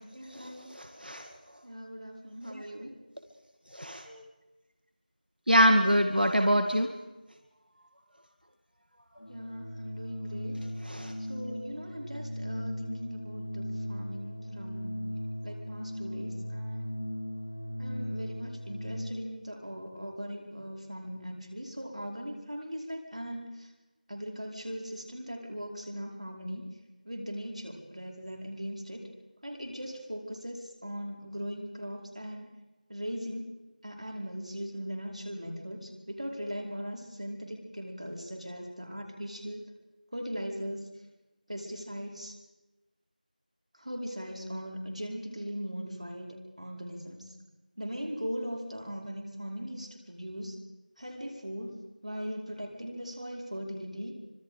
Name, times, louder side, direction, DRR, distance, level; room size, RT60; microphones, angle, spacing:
voice 1, 0.1-0.7 1.6-2.9 9.3-10.6 11.3-15.0 15.4-16.9 17.8-23.7 24.1-26.7 27.0-29.1 29.4-32.5 32.9-33.5 33.8-39.6 40.1-40.9 41.5-42.3 43.7-47.3 47.8-50.6 51.0-54.2, equal, 50° right, 1 dB, 5.0 m, -39 dB
voice 2, 0.8-1.2 3.7-4.2 5.5-6.9 10.9-11.1, equal, 85° right, 5 dB, 2.2 m, -24 dB
Organ, 9.2-19.5, equal, 45° left, 1.2 m, -38 dB
28.0 x 25.5 x 5.1 m, 1.1 s
figure-of-eight pair, 180°, 5 cm